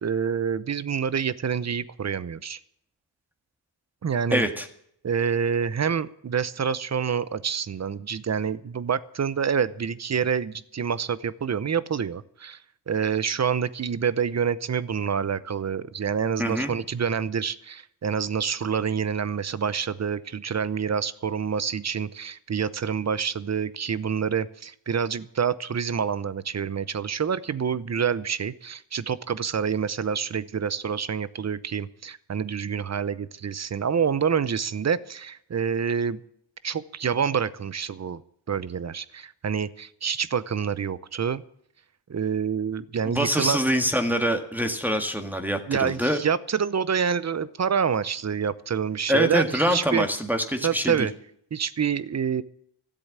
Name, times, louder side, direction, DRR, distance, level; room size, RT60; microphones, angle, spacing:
voice 1, 0.0-2.6 4.0-4.4 5.0-12.6 12.9-36.2 36.6-38.2 38.5-41.4 42.1-43.6 45.7-50.1 50.6-51.1 51.5-52.4, right 7 dB, 35° right, 17 dB, 0.8 m, -27 dB
voice 2, 4.3-4.7 16.4-16.7 43.1-46.2 49.1-51.1, equal, 5° right, 4 dB, 1.8 m, -25 dB
13.5 x 7.8 x 9.6 m, 0.70 s
cardioid pair, 70°, 45 cm